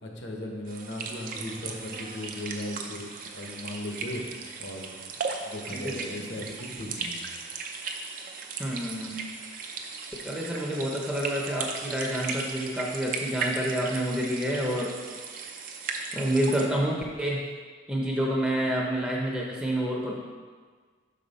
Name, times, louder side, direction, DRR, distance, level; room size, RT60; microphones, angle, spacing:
voice 1, 0.0-4.2 4.6-4.9 5.1-7.2, left 1 dB, 65° left, 1 dB, 1.0 m, -37 dB
sound 1, 0.7-16.7, right 4 dB, 45° right, 0.5 m, -37 dB
voice 2, 5.7-6.4 8.6-9.2 10.2-15.0 16.1-17.4 17.9-20.1, right 1 dB, 5° right, -2 dB, 0.6 m, -28 dB
5.9 x 5.4 x 4.1 m, 1.5 s
head